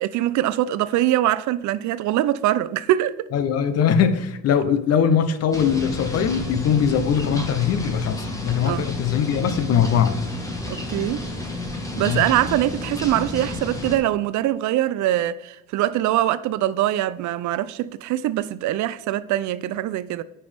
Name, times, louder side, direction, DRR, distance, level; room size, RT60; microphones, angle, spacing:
voice 1, 0.0-3.2 8.6-8.8 10.7-11.3 12.0-20.2, right 13 dB, 70° right, 0.5 m, -23 dB
voice 2, 3.3-10.2 12.0-12.2, left 7 dB, 55° left, 0.7 m, -21 dB
sound 1, 5.5-14.0, left 2 dB, 10° left, 1.3 m, -31 dB
9.2 x 5.5 x 3.4 m
cardioid pair, 165°, 30 cm